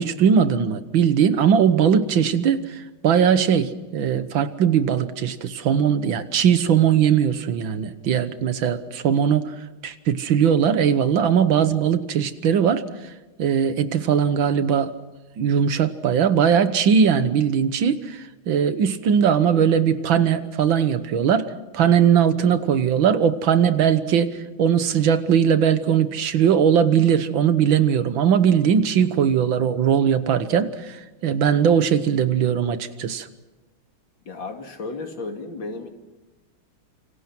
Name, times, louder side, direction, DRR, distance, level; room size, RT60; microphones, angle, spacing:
voice 1, 0.0-9.5 9.8-12.8 13.4-14.9 15.4-33.3, right 8 dB, 70° right, 12 dB, 1.9 m, -20 dB
voice 2, 34.2-35.9, left 3 dB, 65° left, 5 dB, 3.1 m, -33 dB
27.5 x 25.0 x 6.0 m, 1.1 s
omnidirectional pair, 2.2 m